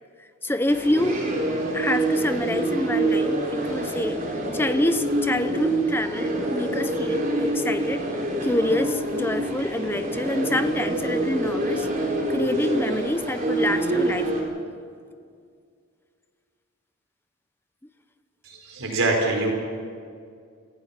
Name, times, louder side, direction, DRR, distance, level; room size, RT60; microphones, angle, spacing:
voice 1, 0.4-1.3 1.7-8.1 8.4-14.3, left 1 dB, 10° left, 10 dB, 0.8 m, -27 dB
sound 1, 0.7-14.4, right 1 dB, 40° right, 4.3 m, -26 dB
voice 2, 18.4-19.5, right 2 dB, 70° right, 1 dB, 4.7 m, -24 dB
27.0 x 16.0 x 5.9 m, 2.2 s
head